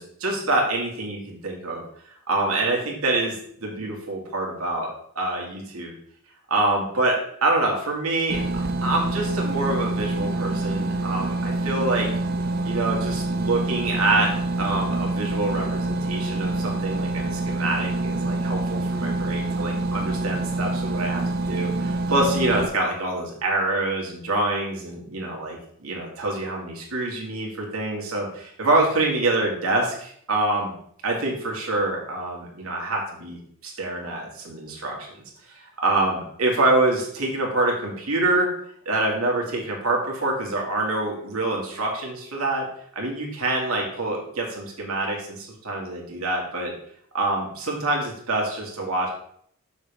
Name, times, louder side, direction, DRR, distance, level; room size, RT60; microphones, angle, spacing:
voice 1, 0.0-1.8 2.3-4.9 5.2-5.9 6.5-8.4 8.8-12.1 12.6-14.3 14.6-30.7 31.0-35.1 35.5-38.5 38.9-42.7 43.0-46.7 47.1-49.1, right 2 dB, 90° right, -1 dB, 2.2 m, -26 dB
sound 1, 8.3-22.7, right 2 dB, 45° right, 0.6 m, -26 dB
7.2 x 6.3 x 3.5 m, 0.65 s
head